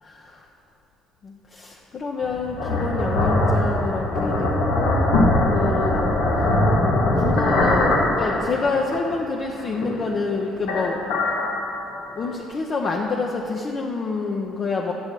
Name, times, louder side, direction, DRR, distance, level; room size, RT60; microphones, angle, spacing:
voice 1, 0.0-0.5 1.2-4.5 4.7-6.1 7.1-11.0 12.2-14.9, left 4 dB, 45° left, 0 dB, 0.7 m, -27 dB
sound 1, 2.2-9.1 9.4-10.3 10.6-12.3, left 1 dB, 80° left, 1.1 m, -21 dB
8.5 x 6.4 x 4.6 m, 2.8 s
hypercardioid pair, 65°, 0 cm